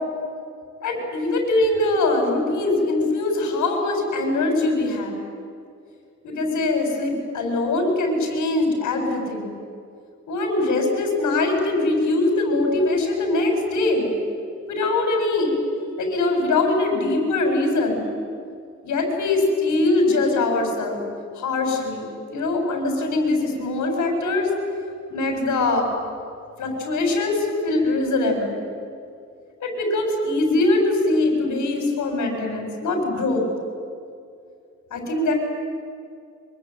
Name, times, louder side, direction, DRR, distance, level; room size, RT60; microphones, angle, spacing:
voice 1, 0.8-5.2 6.2-9.5 10.3-14.1 14.7-15.5 16.0-18.1 18.8-21.0 21.3-24.5 25.1-25.9 26.6-28.6 29.6-33.4 34.9-35.3, left 2 dB, 80° left, 2 dB, 7.6 m, -22 dB
26.0 x 24.0 x 9.5 m, 2.3 s
cardioid pair, 125°, 29 cm